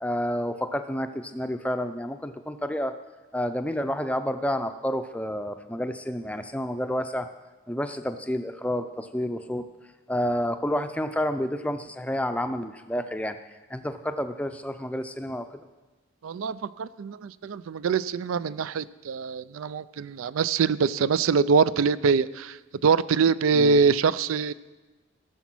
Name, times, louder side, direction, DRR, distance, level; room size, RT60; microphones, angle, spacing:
voice 1, 0.0-2.9 3.3-7.3 7.7-9.6 10.1-13.4 13.7-15.7 23.5-23.8, equal, 5° left, 8 dB, 0.5 m, -29 dB
voice 2, 16.2-24.5, right 5 dB, 85° right, 17 dB, 0.4 m, -24 dB
16.5 x 7.0 x 6.1 m, 1.2 s
head